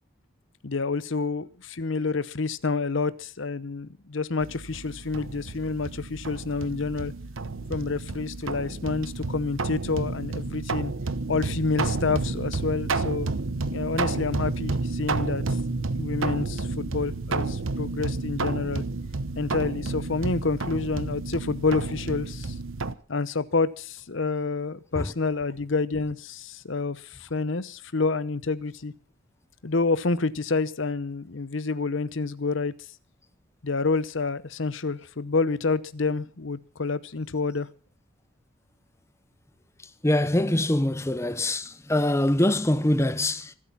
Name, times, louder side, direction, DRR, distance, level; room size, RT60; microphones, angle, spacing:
voice 1, 0.6-7.1 7.7-10.9 11.3-13.3 13.7-15.6 15.9-18.8 19.3-22.5 23.1-28.9 29.6-32.7 33.6-37.7, left 4 dB, 65° left, 0.8 m, -28 dB
sound 1, 4.4-22.9, right 3 dB, 75° right, 0.9 m, -31 dB
voice 2, 40.0-43.5, left 1 dB, 15° left, 0.7 m, -24 dB
25.5 x 8.6 x 5.8 m
head